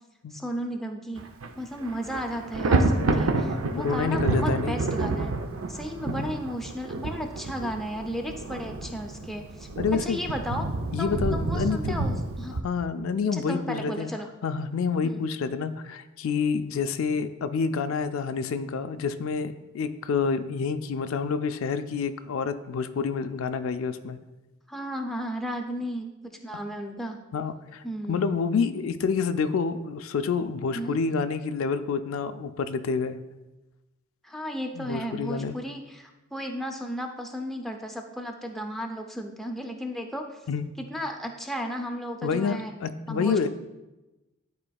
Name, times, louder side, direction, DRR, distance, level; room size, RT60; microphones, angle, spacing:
voice 1, 0.3-1.2 1.6-5.3 5.7-9.7 10.0-10.7 11.0-12.5 13.3-14.3 15.0-15.2 24.7-26.1 26.4-27.2 27.8-28.2 30.7-31.0 34.2-40.4 40.8-42.7 43.1-43.5, equal, ahead, 2 dB, 0.5 m, -34 dB
Thunder, 1.2-1.5 1.8-12.6, right 2 dB, 80° right, 0.5 m, -29 dB
voice 2, 3.8-4.8 6.1-6.3 9.8-10.2 10.9-12.0 12.6-14.1 14.4-24.2 26.5-26.6 27.3-33.2 34.8-35.6 40.5-40.7 42.2-43.5, left 5 dB, 75° left, 9 dB, 0.4 m, -28 dB
11.5 x 4.3 x 2.3 m, 1.0 s
head